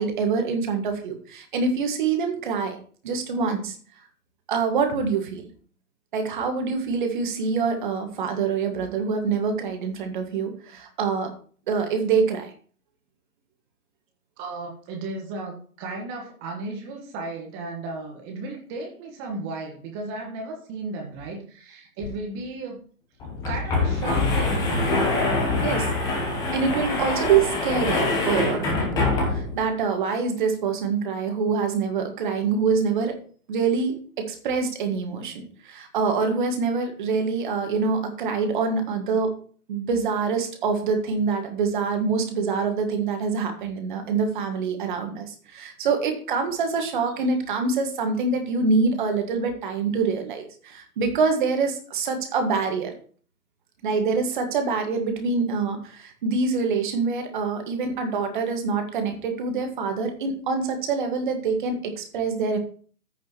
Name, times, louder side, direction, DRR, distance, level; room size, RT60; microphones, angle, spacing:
voice 1, 0.0-2.8 3.0-3.8 4.5-5.4 6.1-11.3 11.7-12.5 25.6-25.9 26.5-33.1 33.5-39.3 39.7-52.9 53.8-62.6, right 5 dB, 30° right, 5 dB, 1.8 m, -25 dB
voice 2, 14.4-22.8 23.5-24.8, right 3 dB, 15° right, 2 dB, 1.3 m, -35 dB
sound 1, 22.0-22.1 22.4-22.5 23.2-29.6, left 2 dB, 10° left, 1.1 m, -24 dB
14.5 x 5.5 x 3.0 m, 0.43 s
figure-of-eight pair, 145°, 45 cm